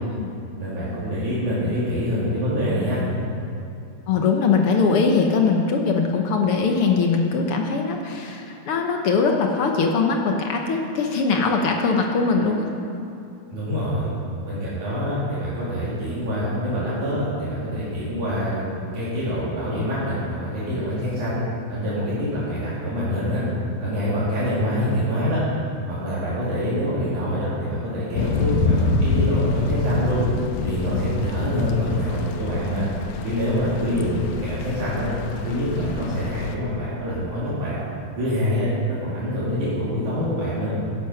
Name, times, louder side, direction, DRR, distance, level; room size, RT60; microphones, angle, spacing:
voice 1, 0.6-3.0 13.5-14.1 14.4-21.4 21.7-23.4 23.8-25.4 25.9-30.2 30.6-32.8 33.2-35.2 35.4-37.8 38.2-40.7, equal, 70° right, -10 dB, 4.5 m, -25 dB
voice 2, 4.1-12.7, left 4 dB, 65° left, 2 dB, 1.5 m, -21 dB
Thunder / Rain, 28.2-36.6, left 3 dB, 80° left, 2.2 m, -26 dB
15.5 x 10.5 x 5.7 m, 2.6 s
omnidirectional pair, 3.6 m